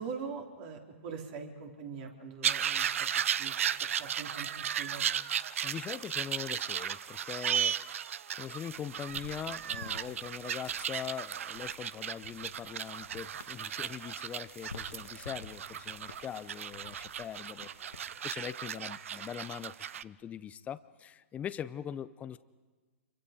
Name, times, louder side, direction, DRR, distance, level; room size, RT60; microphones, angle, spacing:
voice 1, 0.0-2.9 3.2-5.0, right 5 dB, 45° right, 2 dB, 3.6 m, -43 dB
sound 1, 2.4-20.0, right 9 dB, 65° right, 0.6 m, -35 dB
voice 2, 5.6-7.8 8.4-22.4, left 9 dB, 20° left, 14 dB, 0.6 m, -42 dB
sound 2, 8.5-18.2, left 4 dB, 80° left, 1.6 m, -52 dB
27.0 x 24.0 x 5.2 m, 1.4 s
hypercardioid pair, 120°, 8 cm